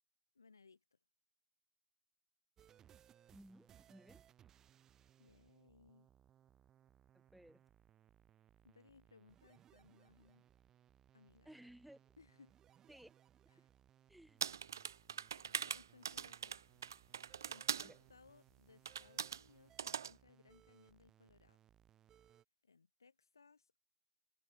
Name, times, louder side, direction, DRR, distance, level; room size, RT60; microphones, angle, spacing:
voice 1, 0.3-0.8 5.2-6.1 8.6-10.4 11.1-11.6 12.2-12.6 13.5-13.7 15.3-16.6 17.2-21.6 22.6-23.8, left 4 dB, 75° left, 6.6 m, -66 dB
sound 1, 2.6-22.4, right 10 dB, 25° right, 2.7 m, -68 dB
voice 2, 3.3-4.3 7.1-7.6 11.4-12.1 12.9-13.1 14.1-14.4 17.8-18.0, right 1 dB, ahead, 1.5 m, -59 dB
sound 2, 14.4-17.9 18.9-19.4 19.8-20.1, right 8 dB, 65° right, 0.6 m, -42 dB
figure-of-eight pair, 100°, 2 cm